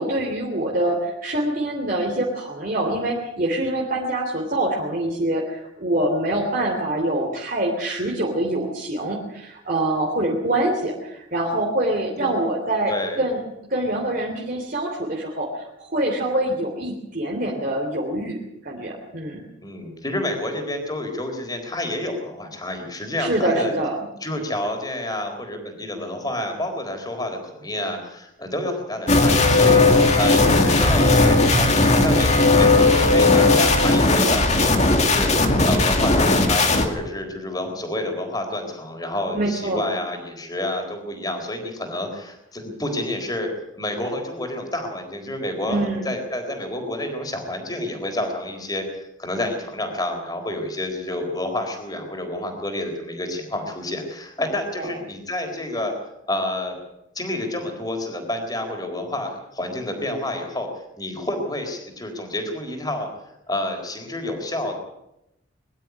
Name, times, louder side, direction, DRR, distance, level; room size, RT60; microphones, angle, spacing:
voice 1, 0.0-13.4 13.7-18.4 18.6-19.4 23.2-24.0 39.3-39.9 45.7-46.1 54.8-54.9, right 1 dB, 45° right, -2 dB, 3.3 m, -25 dB
voice 2, 12.9-13.2 19.6-23.7 24.2-55.9 56.3-56.8 57.1-60.7 61.0-63.1 63.5-64.7, left 1 dB, 20° left, 4 dB, 4.1 m, -29 dB
sound 1, 29.1-36.9, left 2 dB, 35° left, 2.3 m, -17 dB
23.0 x 12.0 x 9.6 m, 0.85 s
head